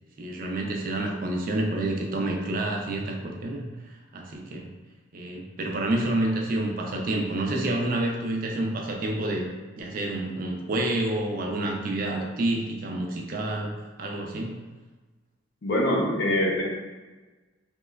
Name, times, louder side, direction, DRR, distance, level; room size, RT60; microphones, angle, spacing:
voice 1, 0.2-3.7 4.1-4.7 5.1-9.4 9.8-14.5, right 1 dB, 45° right, 1 dB, 0.3 m, -28 dB
voice 2, 15.6-16.6, left 1 dB, 55° left, -1 dB, 0.5 m, -24 dB
2.8 x 2.2 x 2.2 m, 1.3 s
head